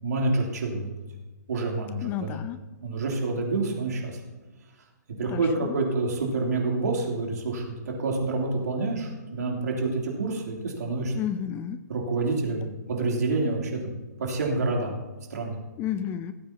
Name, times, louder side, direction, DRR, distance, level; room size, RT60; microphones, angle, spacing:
voice 1, 0.0-1.0 1.5-2.4 2.8-4.2 5.2-11.1 11.9-13.9 14.2-15.0 15.3-15.6, right 3 dB, 65° right, -1 dB, 3.1 m, -28 dB
voice 2, 2.0-2.6 5.3-5.8 11.1-11.8 15.8-16.3, left 9 dB, 20° left, 13 dB, 0.4 m, -31 dB
17.0 x 8.8 x 2.9 m, 1.1 s
figure-of-eight pair, 130°, 10 cm